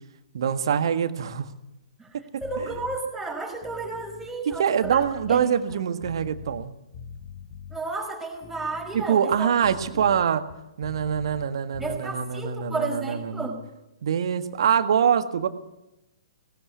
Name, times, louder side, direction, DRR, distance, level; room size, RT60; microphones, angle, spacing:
voice 1, 0.3-1.5 2.1-2.2 4.6-6.7 8.9-10.4 10.8-13.5 14.0-15.5, right 8 dB, 55° right, 10 dB, 1.6 m, -24 dB
voice 2, 2.0-5.8 7.7-9.5 9.9-10.0 11.8-13.6, right 3 dB, 5° right, 0 dB, 5.2 m, -33 dB
sound 1, 2.4-3.0 3.5-6.7 6.9-7.8 8.3-11.5 11.7-12.0, left 6 dB, 30° left, 2.0 m, -43 dB
19.0 x 18.5 x 8.2 m, 0.92 s
figure-of-eight pair, 120°, 3 cm